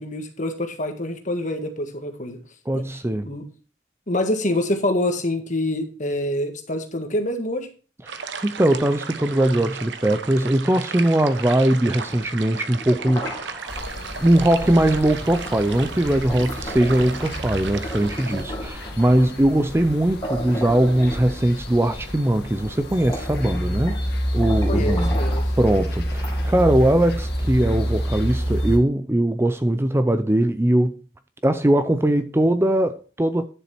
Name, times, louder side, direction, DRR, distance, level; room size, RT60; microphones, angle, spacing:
voice 1, 0.0-2.4 2.7-2.8 3.2-3.4 4.1-7.7 24.7-25.4, left 1 dB, 45° left, 1.7 m, -26 dB
voice 2, 2.7-3.3 8.1-13.8 14.2-24.0 24.3-25.2 25.6-31.0 31.4-33.5, right 1 dB, 15° right, 0.5 m, -20 dB
sound 1, 8.1-18.4, right 6 dB, 75° right, 1.0 m, -35 dB
sound 2, 11.8-13.9 14.8-15.0 15.3-17.4 17.7-19.4 19.9-20.0 20.2-21.7 22.4-22.5 22.8-24.1 24.4-25.5 26.1-26.9, equal, 20° left, 3.8 m, -36 dB
sound 3, 13.7-28.8, equal, 60° left, 2.2 m, -28 dB
10.5 x 7.2 x 4.4 m
head